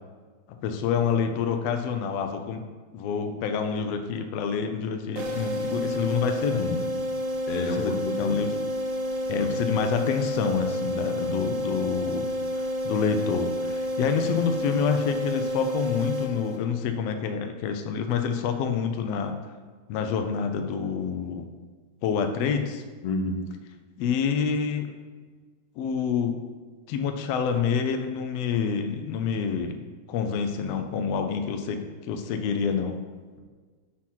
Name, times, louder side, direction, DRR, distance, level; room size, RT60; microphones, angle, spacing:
voice 1, 0.6-2.7 2.9-6.9 7.8-8.5 9.3-12.3 12.5-19.3 19.9-21.5 22.0-22.8 24.0-24.9 25.8-26.4 26.9-29.8 30.1-33.0, left 6 dB, 85° left, 6 dB, 1.4 m, -27 dB
sound 1, 5.2-16.9, left 1 dB, 80° right, 2.6 m, -30 dB
voice 2, 7.5-8.4 9.4-9.5 11.2-11.5 23.0-23.5, left 2 dB, 70° left, 3 dB, 1.9 m, -30 dB
7.5 x 4.2 x 5.6 m, 1.5 s
omnidirectional pair, 3.5 m